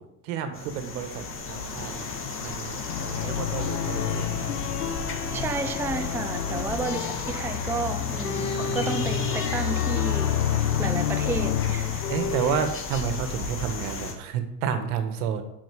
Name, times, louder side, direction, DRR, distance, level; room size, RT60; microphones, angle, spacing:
voice 1, 0.0-2.1 2.4-4.3 12.1-15.4, right 7 dB, 65° right, 8 dB, 1.7 m, -31 dB
sound 1, 0.5-14.1, left 4 dB, 25° left, 2.1 m, -34 dB
sound 2, 2.9-12.7, left 9 dB, 80° left, 1.3 m, -29 dB
voice 2, 5.3-12.1, right 4 dB, 5° right, 7 dB, 0.5 m, -32 dB
7.8 x 6.1 x 7.5 m, 0.87 s
supercardioid pair, 105°, 47 cm